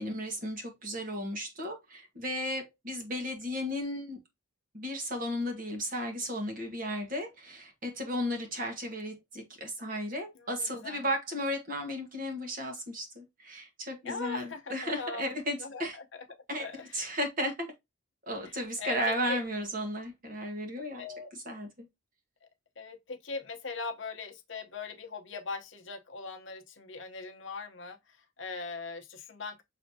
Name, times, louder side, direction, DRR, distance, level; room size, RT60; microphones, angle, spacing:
voice 1, 0.0-4.2 4.7-16.0 16.5-16.6 16.9-17.7 18.3-21.0 21.4-21.7, equal, 40° right, 1.4 m, -34 dB
voice 2, 10.3-11.0 14.0-15.2 15.6-16.0 16.6-17.2 18.4-19.4 21.0-21.3 22.8-29.6, left 4 dB, 60° left, 0.9 m, -40 dB
6.1 x 3.2 x 2.7 m
head